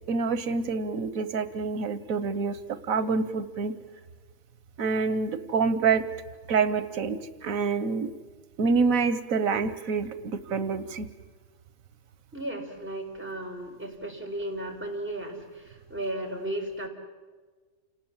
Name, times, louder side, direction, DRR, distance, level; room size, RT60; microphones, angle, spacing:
voice 1, 0.1-2.6 2.9-3.7 4.8-6.0 6.5-8.1 8.6-11.1, right 5 dB, 85° right, 13 dB, 1.4 m, -27 dB
voice 2, 12.3-16.9, right 1 dB, 10° right, 0 dB, 4.2 m, -35 dB
28.5 x 19.5 x 7.3 m, 1.4 s
omnidirectional pair, 1.4 m